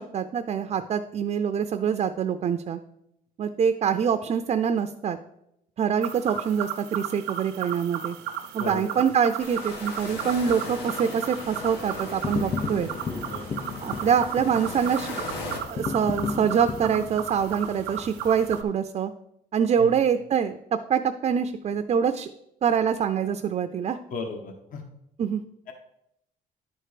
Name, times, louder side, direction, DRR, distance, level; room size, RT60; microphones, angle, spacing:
voice 1, 0.0-2.8 3.4-5.2 5.8-8.2 8.5-12.9 13.8-15.2 15.7-19.1 19.5-22.3 22.6-24.0 25.2-25.4, right 7 dB, 40° right, 9 dB, 0.4 m, -25 dB
sound 1, 6.0-18.6, right 10 dB, 80° right, 0.7 m, -35 dB
sound 2, 9.4-15.6, left 3 dB, 80° left, 1.7 m, -38 dB
sound 3, 11.5-18.7, left 5 dB, 20° left, 0.5 m, -35 dB
voice 2, 12.8-13.4 19.8-19.9 24.1-24.8 25.7-25.8, left 4 dB, 55° left, 5 dB, 1.2 m, -36 dB
10.5 x 4.4 x 5.0 m, 0.78 s
cardioid pair, 110°, 17 cm